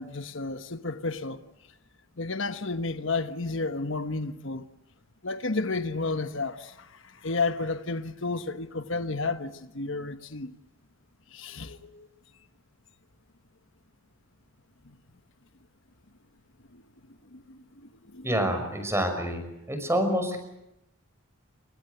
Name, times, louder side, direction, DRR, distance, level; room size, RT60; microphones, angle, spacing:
voice 1, 0.0-1.4 2.2-4.6 5.2-6.7 7.2-10.5 11.3-12.1 17.3-17.6 18.1-18.3, left 3 dB, 60° left, 1.3 m, -31 dB
voice 2, 18.2-20.4, equal, 10° right, 5.7 m, -27 dB
28.0 x 25.0 x 8.0 m
head